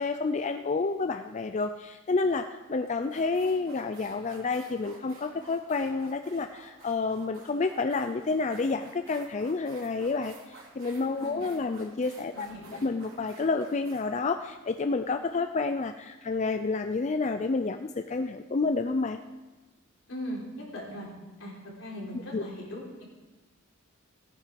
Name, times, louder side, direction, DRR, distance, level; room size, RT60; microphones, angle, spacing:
voice 1, 0.0-12.5 12.8-19.2 22.3-22.4, left 3 dB, 35° left, 8 dB, 0.4 m, -29 dB
sound 1, 2.4-2.6 3.0-15.3, right 3 dB, 85° right, 3.0 m, -52 dB
voice 2, 11.1-11.5 12.3-12.8 20.1-21.1 21.4-23.0, equal, 75° left, -3 dB, 3.9 m, -39 dB
16.0 x 9.3 x 5.2 m, 1.2 s
head